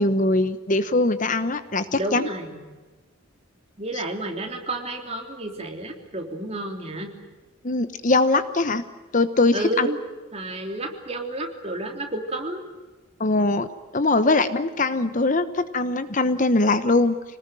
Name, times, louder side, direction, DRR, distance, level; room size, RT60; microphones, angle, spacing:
voice 1, 0.0-2.3 3.9-4.0 7.6-8.8 9.1-9.9 13.2-13.7 13.9-17.2, left 2 dB, 40° left, 12 dB, 1.0 m, -21 dB
voice 2, 1.9-2.6 3.8-7.1 9.5-10.0 10.3-12.6, right 2 dB, 30° right, 3 dB, 3.4 m, -31 dB
26.0 x 19.5 x 9.2 m, 1.2 s
head